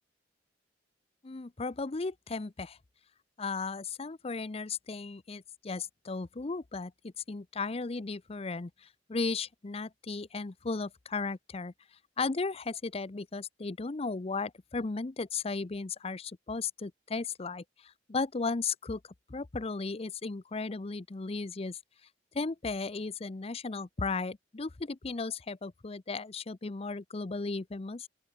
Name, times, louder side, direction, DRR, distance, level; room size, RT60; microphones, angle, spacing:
voice 1, 1.2-2.8 3.4-11.7 12.2-19.0 19.3-21.8 22.3-28.1, left 4 dB, 35° left, 0.6 m, -35 dB
open air
head